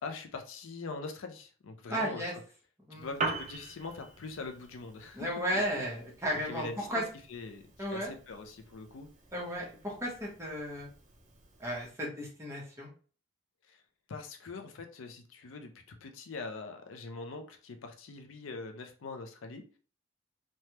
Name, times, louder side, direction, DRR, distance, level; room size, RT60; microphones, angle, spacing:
voice 1, 0.0-2.2 2.9-5.6 6.5-7.0 7.3-7.6 7.9-9.1 13.7-13.8 14.1-19.6, left 3 dB, 80° left, 6 dB, 0.5 m, -42 dB
voice 2, 1.9-2.3 2.9-3.1 5.1-7.0 7.8-8.1 9.3-10.9 11.6-12.9, equal, 15° right, -3 dB, 0.9 m, -34 dB
Piano, 2.9-11.9, right 3 dB, 35° right, 0.5 m, -43 dB
3.2 x 2.2 x 2.8 m, 0.39 s
head